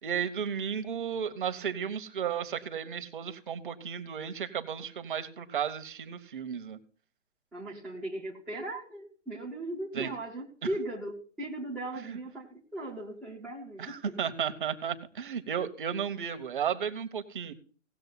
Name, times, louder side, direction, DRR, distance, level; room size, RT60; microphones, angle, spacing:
voice 1, 0.0-6.8 9.9-10.1 12.0-12.2 13.8-17.5, right 8 dB, 45° right, 11 dB, 1.1 m, -34 dB
voice 2, 7.5-11.1 11.4-14.2, right 1 dB, ahead, -8 dB, 0.5 m, -38 dB
17.5 x 6.7 x 4.0 m, 0.40 s
figure-of-eight pair, 130°, 37 cm